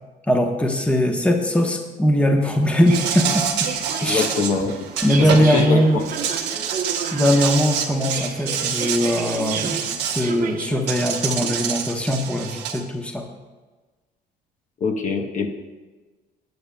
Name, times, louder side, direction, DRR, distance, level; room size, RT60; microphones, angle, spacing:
voice 1, 0.3-3.7 4.0-4.3 5.0-6.0 7.1-9.8 10.1-13.2, equal, 5° left, 3 dB, 1.0 m, -20 dB
sound 1, 2.4-11.0, right 7 dB, 55° right, 0.9 m, -32 dB
Insect, 2.9-5.6 6.0-10.3 10.9-12.8, right 8 dB, 90° right, 1.3 m, -27 dB
voice 2, 4.0-4.9 5.2-6.0 14.8-15.5, left 4 dB, 45° left, 4 dB, 1.0 m, -23 dB
18.5 x 8.7 x 2.3 m, 1.3 s
cardioid pair, 130°, 17 cm